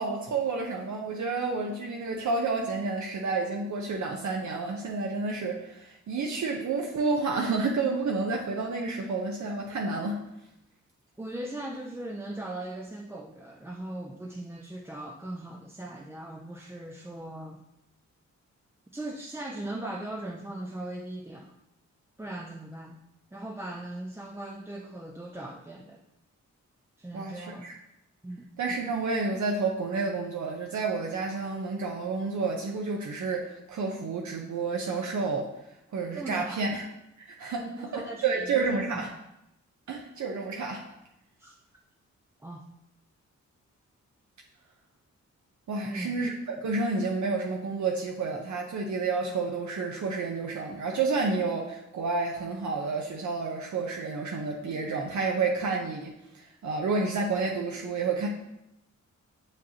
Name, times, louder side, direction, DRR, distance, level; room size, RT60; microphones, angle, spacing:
voice 1, 0.0-10.2 27.1-27.7 28.6-35.5 35.9-36.8 37.3-37.6 37.9-39.1 39.9-40.8 45.7-58.3, right 4 dB, 70° right, 1 dB, 0.7 m, -30 dB
voice 2, 11.2-17.6 18.9-21.5 22.2-23.0 23.3-26.0 27.0-27.7 28.2-28.5 36.1-36.6 37.6-39.1 41.4-41.5 42.4-42.7 45.8-46.2, right 1 dB, 10° right, 0 dB, 0.4 m, -39 dB
7.3 x 5.1 x 2.8 m, 0.87 s
wide cardioid pair, 135°, 30 cm